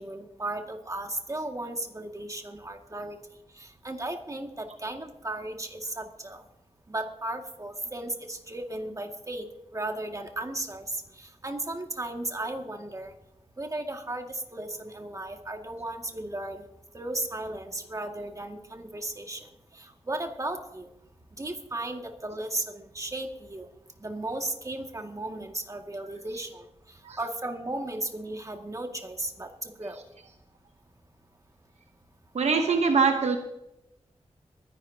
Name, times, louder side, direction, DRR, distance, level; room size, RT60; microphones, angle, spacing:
voice 1, 0.0-3.2 3.6-6.4 6.9-9.5 9.7-13.1 13.6-16.6 16.9-19.5 19.7-20.9 21.4-23.7 24.0-26.7 27.2-30.0, right 2 dB, 30° right, 3 dB, 2.0 m, -35 dB
voice 2, 32.3-33.4, right 5 dB, 75° right, 5 dB, 1.0 m, -23 dB
23.0 x 10.5 x 2.8 m, 0.87 s
cardioid pair, 55°, 11 cm